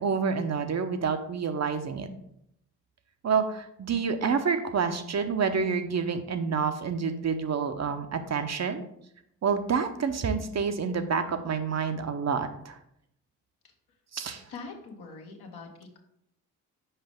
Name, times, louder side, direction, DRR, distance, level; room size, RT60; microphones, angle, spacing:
voice 1, 0.0-2.1 3.2-8.8 9.4-12.8 14.1-14.4, right 5 dB, 40° right, 8 dB, 0.7 m, -28 dB
voice 2, 14.5-16.0, left 4 dB, 65° left, 2 dB, 1.3 m, -43 dB
5.6 x 5.0 x 3.5 m, 0.73 s
hypercardioid pair, 45°, 41 cm